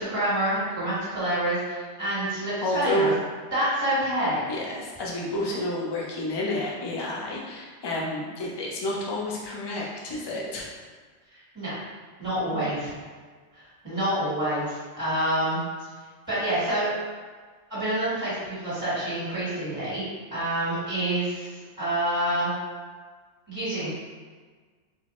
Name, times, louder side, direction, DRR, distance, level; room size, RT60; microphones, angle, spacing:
voice 1, 0.0-3.1 3.5-4.4 5.5-5.6 11.5-11.8 12.2-12.9 13.5-15.6 16.3-16.9 17.7-20.0 20.3-22.5 23.5-24.0, right 1 dB, 20° right, -13 dB, 1.2 m, -27 dB
voice 2, 2.6-3.1 4.5-10.8, left 1 dB, 40° left, -3 dB, 0.3 m, -30 dB
3.9 x 2.0 x 3.0 m, 1.5 s
omnidirectional pair, 1.2 m